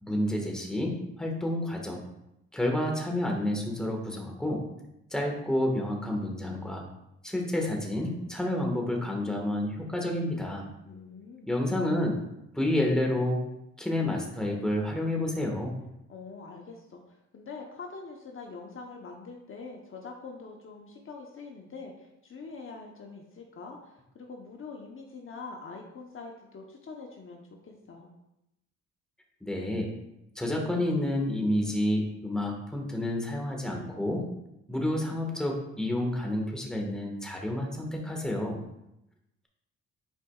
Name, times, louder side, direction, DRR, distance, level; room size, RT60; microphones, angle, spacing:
voice 1, 0.0-2.0 2.5-4.6 5.1-6.8 7.2-10.7 11.5-12.2 12.5-13.4 13.8-15.7 29.4-29.9 30.3-34.2 34.7-38.6, left 1 dB, ahead, 0 dB, 1.6 m, -29 dB
voice 2, 10.8-11.5 16.1-28.1, left 4 dB, 45° left, 1 dB, 1.0 m, -44 dB
10.0 x 4.8 x 2.4 m, 0.86 s
cardioid pair, 90°, 30 cm